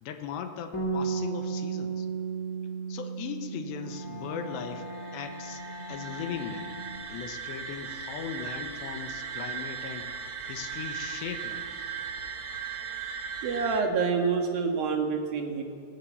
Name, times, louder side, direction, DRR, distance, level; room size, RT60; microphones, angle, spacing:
voice 1, 0.0-2.1 2.9-4.9 5.1-5.6 5.9-6.7 7.1-10.1 10.5-11.9, left 7 dB, 85° left, 7 dB, 3.5 m, -38 dB
Bass guitar, 0.7-7.0, right 5 dB, 25° left, 1.9 m, -35 dB
Bowed string instrument, 3.8-7.5, left 4 dB, 15° right, 8.3 m, -44 dB
sound 1, 4.7-13.8, right 6 dB, 85° right, 1.2 m, -38 dB
voice 2, 13.4-15.6, right 5 dB, 65° right, 3 dB, 3.3 m, -27 dB
19.0 x 17.0 x 8.7 m, 2.3 s
omnidirectional pair, 4.9 m